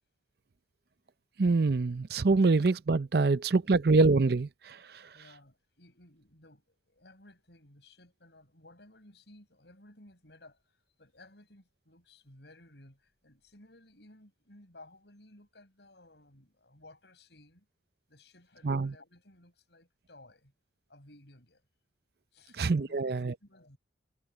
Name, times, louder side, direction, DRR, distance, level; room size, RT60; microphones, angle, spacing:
voice 1, 1.4-4.8 18.6-18.9 22.6-23.3, right 3 dB, 55° right, 0.5 m, -25 dB
voice 2, 5.1-17.7 18.1-20.5 20.9-21.6 22.3-23.8, left 1 dB, 65° left, 7.2 m, -57 dB
head